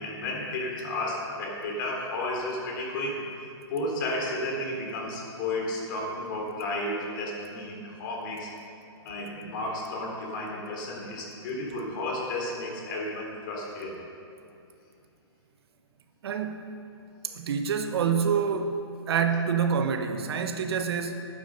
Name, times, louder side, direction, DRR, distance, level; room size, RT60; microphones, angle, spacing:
voice 1, 0.0-8.5 9.0-13.9, left 1 dB, 45° left, -1 dB, 3.6 m, -33 dB
voice 2, 16.2-16.6 17.3-18.8 19.1-21.2, right 6 dB, 65° right, 6 dB, 1.0 m, -27 dB
11.5 x 9.6 x 6.8 m, 2.5 s
hypercardioid pair, 140°, 14 cm